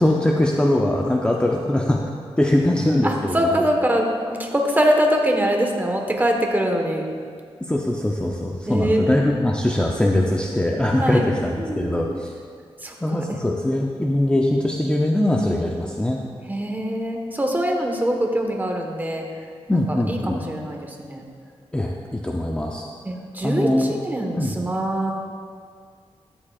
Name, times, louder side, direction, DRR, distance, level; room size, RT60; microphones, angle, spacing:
voice 1, 0.0-2.0 2.4-3.7 7.6-12.3 13.0-16.2 19.7-20.4 21.7-22.8 23.4-24.0 24.4-24.6, left 1 dB, 10° left, -1 dB, 0.6 m, -21 dB
voice 2, 3.0-7.0 8.7-9.5 11.0-11.2 11.6-12.0 12.8-13.4 16.5-19.2 19.7-21.2 23.0-25.1, equal, 15° right, 1 dB, 1.2 m, -23 dB
12.5 x 10.0 x 2.4 m, 2.1 s
wide cardioid pair, 100°, 11 cm